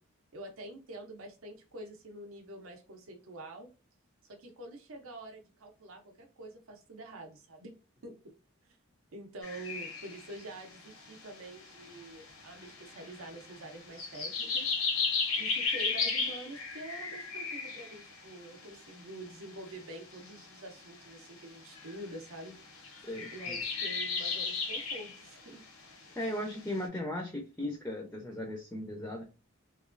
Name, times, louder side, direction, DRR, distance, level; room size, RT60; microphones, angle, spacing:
voice 1, 0.3-3.7 4.2-7.7 8.0-8.3 8.7-8.8 9.1-14.8 15.4-22.5 23.3-25.6, right 2 dB, 75° right, 3 dB, 0.6 m, -46 dB
sound 1, 9.4-21.4 21.7-26.1 26.4-26.7, left 4 dB, 75° left, 0.7 m, -35 dB
voice 2, 23.0-23.6 26.2-29.2, left 1 dB, 10° left, 1 dB, 0.4 m, -37 dB
3.0 x 2.2 x 2.4 m, 0.32 s
head